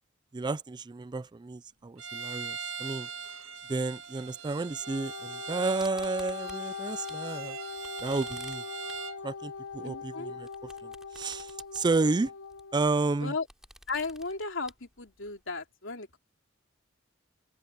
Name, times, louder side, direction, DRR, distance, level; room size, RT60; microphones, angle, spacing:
voice 1, 0.3-3.1 3.7-7.6 8.0-8.6 9.2-10.5 10.8-12.3 12.7-13.3, right 3 dB, 20° right, 0.4 m, -31 dB
Bowed string instrument, 2.0-9.2, right 6 dB, 85° right, 1.8 m, -41 dB
Wind instrument woodwind instrument, 4.7-12.8, left 6 dB, 85° left, 0.8 m, -41 dB
sound 1, 5.8-7.3 7.6-15.4, right 1 dB, 5° right, 6.0 m, -54 dB
voice 2, 9.8-10.3 13.2-13.5 13.9-16.2, left 3 dB, 70° left, 3.4 m, -35 dB
open air
head